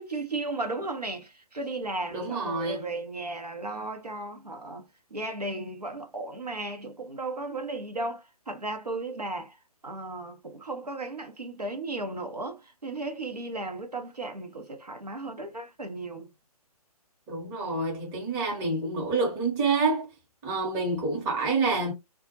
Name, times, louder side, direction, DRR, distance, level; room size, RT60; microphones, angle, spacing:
voice 1, 0.0-4.9 5.1-9.6 9.8-16.3, right 2 dB, 90° right, 0.7 m, -35 dB
voice 2, 2.1-2.8 17.3-20.1 20.4-21.9, right 3 dB, 15° right, 0.7 m, -27 dB
2.2 x 2.1 x 2.8 m
figure-of-eight pair, 135°, 20 cm